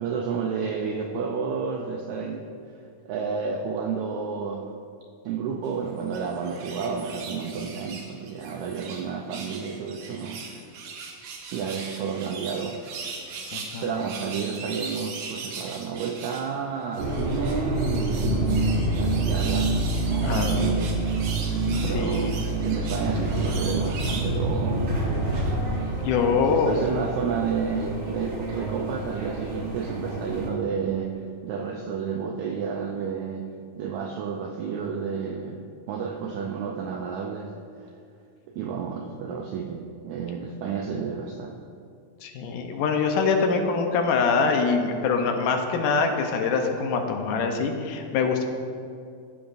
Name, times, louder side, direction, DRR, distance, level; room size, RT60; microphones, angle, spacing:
voice 1, 0.0-2.5 3.0-4.7 5.2-10.4 11.5-12.8 13.8-19.7 20.0-21.0 21.8-25.2 26.2-35.6 35.9-37.9 38.5-41.6, right 6 dB, 90° right, 2 dB, 1.6 m, -31 dB
sound 1, 6.0-9.0 9.3-16.5 16.9-24.4 24.8-24.9, right 4 dB, 70° right, 2.2 m, -39 dB
voice 2, 13.5-13.9 20.2-20.5 21.7-22.4 25.9-26.8 42.2-48.4, left 5 dB, 80° left, 4 dB, 2.3 m, -24 dB
sound 2, 17.0-30.5, right 1 dB, 50° right, 1.7 m, -30 dB
sound 3, 18.2-29.7, right 3 dB, 25° right, 2.0 m, -29 dB
15.0 x 7.0 x 2.5 m, 2.4 s
omnidirectional pair, 3.9 m